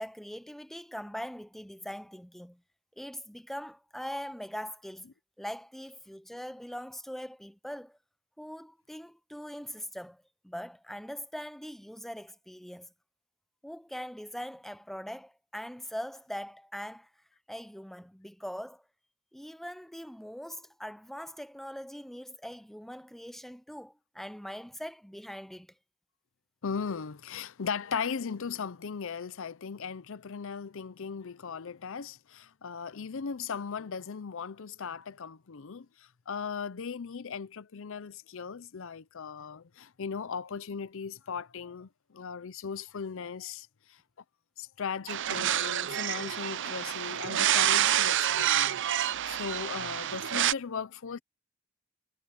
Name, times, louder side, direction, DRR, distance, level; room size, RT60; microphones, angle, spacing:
voice 1, 0.0-2.6 3.0-5.1 5.4-8.0 8.4-12.9 13.6-17.1 17.5-18.8 19.3-25.7, equal, ahead, 0.6 m, -41 dB
voice 2, 26.6-44.0 44.6-51.2, left 6 dB, 65° left, 0.6 m, -38 dB
sound 1, 45.1-50.5, right 11 dB, 60° right, 0.6 m, -28 dB
head